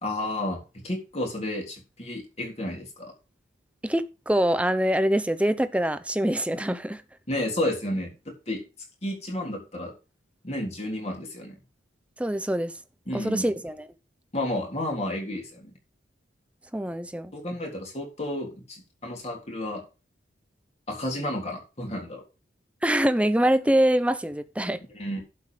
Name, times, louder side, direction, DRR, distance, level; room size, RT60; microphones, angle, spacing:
voice 1, 0.0-3.1 7.3-8.6 9.0-9.9 10.4-11.6 13.1-13.4 14.3-15.7 17.3-19.8 20.9-22.2 24.9-25.2, left 1 dB, 35° left, 3.6 m, -31 dB
voice 2, 3.8-7.0 12.2-12.7 13.1-13.9 16.7-17.3 22.8-24.8, right 1 dB, 5° right, 0.7 m, -24 dB
11.5 x 5.6 x 5.1 m
head